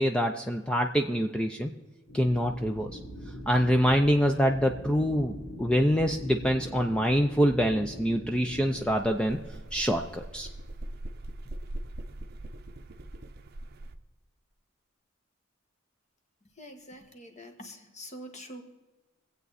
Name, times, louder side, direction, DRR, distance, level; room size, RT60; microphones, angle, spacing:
voice 1, 0.0-1.7 2.1-3.0 3.5-9.4 9.7-10.5, equal, 5° left, 4 dB, 0.5 m, -25 dB
sound 1, 2.1-8.9, equal, 85° left, 4.7 m, -42 dB
sound 2, 8.7-14.0, right 1 dB, 50° right, 0.7 m, -41 dB
voice 2, 16.5-18.6, equal, 35° left, 4 dB, 1.5 m, -45 dB
23.0 x 8.0 x 4.1 m, 1.2 s
head